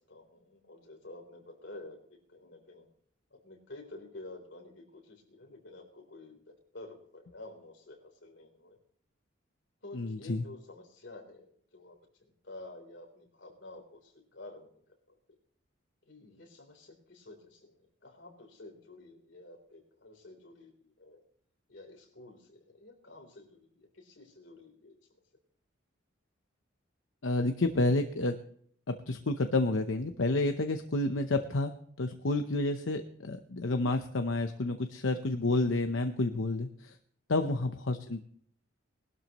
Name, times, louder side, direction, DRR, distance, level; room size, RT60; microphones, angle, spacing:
voice 1, 0.0-2.9 3.3-8.8 9.8-11.5 11.7-15.2 16.1-21.2 21.7-25.0 37.3-37.7, left 2 dB, 65° left, 2 dB, 3.7 m, -50 dB
voice 2, 9.9-10.4 27.2-28.4 28.9-37.0 37.3-38.2, left 2 dB, 85° left, 7 dB, 0.8 m, -30 dB
20.0 x 12.5 x 3.1 m, 0.64 s
head